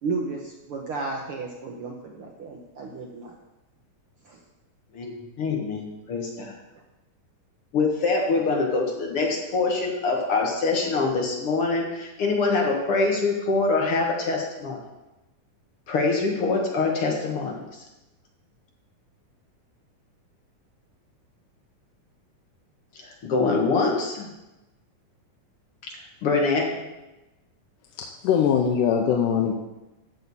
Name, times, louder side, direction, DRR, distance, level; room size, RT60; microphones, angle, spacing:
voice 1, 0.0-3.4 4.2-4.4, right 3 dB, 70° right, 0 dB, 1.3 m, -33 dB
voice 2, 4.9-6.6 7.7-14.8 15.9-17.6 23.0-24.3 26.2-26.7, left 3 dB, 55° left, 0 dB, 1.9 m, -24 dB
voice 3, 28.0-29.5, left 8 dB, 85° left, 2 dB, 2.3 m, -22 dB
13.0 x 6.7 x 4.1 m, 1.0 s
omnidirectional pair, 3.7 m